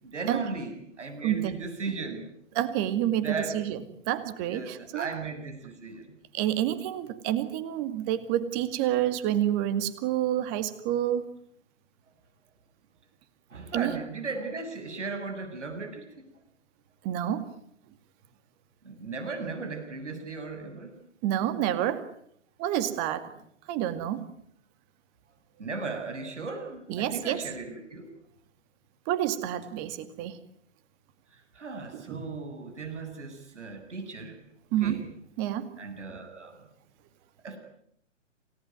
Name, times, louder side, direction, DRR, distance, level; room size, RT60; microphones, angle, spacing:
voice 1, 0.0-2.2 3.2-3.5 4.5-6.1 13.5-16.2 18.8-21.0 25.6-28.1 31.5-34.4 34.8-35.1 35.8-36.5 37.4-37.6, right 4 dB, 70° right, 6 dB, 7.9 m, -36 dB
voice 2, 2.5-5.1 6.3-11.3 13.7-14.0 17.0-17.4 21.2-22.1 22.6-23.3 23.7-24.2 26.9-27.4 29.1-30.4 31.9-32.3 34.7-35.0 35.4-35.7, right 12 dB, 25° right, 12 dB, 2.3 m, -28 dB
28.0 x 18.5 x 9.6 m, 0.70 s
figure-of-eight pair, 130°, 37 cm